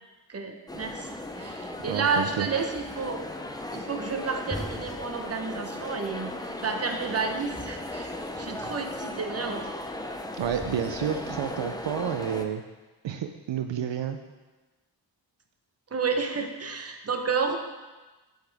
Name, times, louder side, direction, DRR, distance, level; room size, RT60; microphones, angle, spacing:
voice 1, 0.3-1.1 1.4-3.2 3.7-9.6 15.9-17.6, right 5 dB, 35° right, 4 dB, 0.8 m, -31 dB
sound 1, 0.7-12.4, left 1 dB, 10° left, 0.5 m, -36 dB
voice 2, 1.9-2.5 10.3-12.6 13.0-14.2, right 8 dB, 75° right, 7 dB, 0.6 m, -30 dB
8.2 x 8.1 x 3.4 m, 1.2 s
wide cardioid pair, 140°, 45 cm